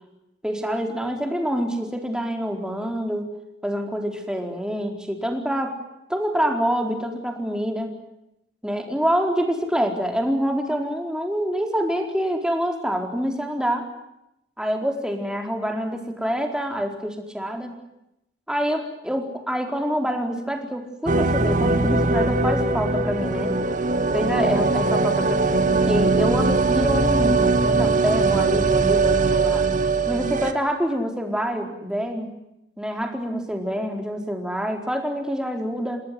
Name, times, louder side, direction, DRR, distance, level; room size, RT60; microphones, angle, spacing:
voice 1, 0.4-3.3 3.6-5.7 6.1-7.9 8.6-13.9 14.6-17.7 18.5-23.5 24.1-29.7 30.1-32.3 32.8-36.0, equal, 5° right, 4 dB, 4.3 m, -26 dB
sound 1, 21.1-30.5, right 3 dB, 50° right, 2.1 m, -21 dB
29.0 x 19.5 x 9.6 m, 0.87 s
head